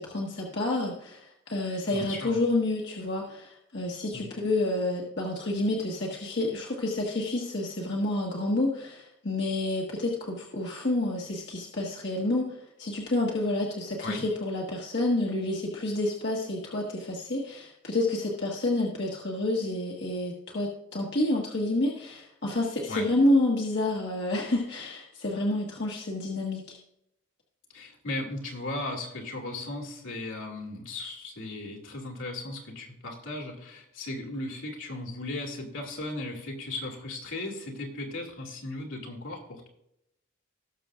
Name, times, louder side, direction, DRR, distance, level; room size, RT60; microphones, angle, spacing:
voice 1, 0.0-26.8, left 2 dB, 55° left, -2 dB, 1.5 m, -29 dB
voice 2, 1.9-2.4 4.1-4.3 14.0-14.2 22.9-23.1 27.7-39.7, left 2 dB, 70° left, 0 dB, 2.5 m, -36 dB
18.5 x 6.8 x 2.5 m, 0.80 s
head